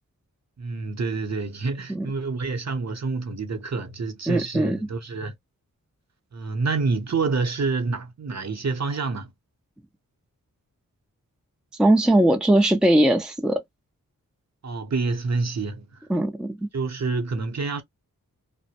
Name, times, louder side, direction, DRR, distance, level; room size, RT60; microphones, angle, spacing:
voice 1, 0.6-5.3 6.3-9.3 14.6-15.9 16.7-17.8, right 4 dB, 50° right, 0.9 m, -27 dB
voice 2, 4.3-4.8 11.8-13.6 16.1-16.7, right 1 dB, ahead, 0.6 m, -20 dB
2.1 x 2.0 x 2.8 m
cardioid pair, 45°, 35 cm